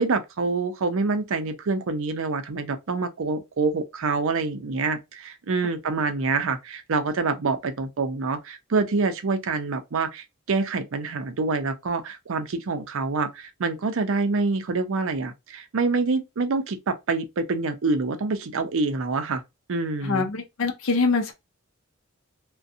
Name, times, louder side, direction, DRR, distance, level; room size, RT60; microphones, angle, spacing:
voice 1, 0.0-19.4 19.7-20.3, right 3 dB, 65° right, 0.5 m, -26 dB
voice 2, 20.0-21.3, left 4 dB, 70° left, 0.5 m, -24 dB
2.4 x 2.2 x 2.6 m
head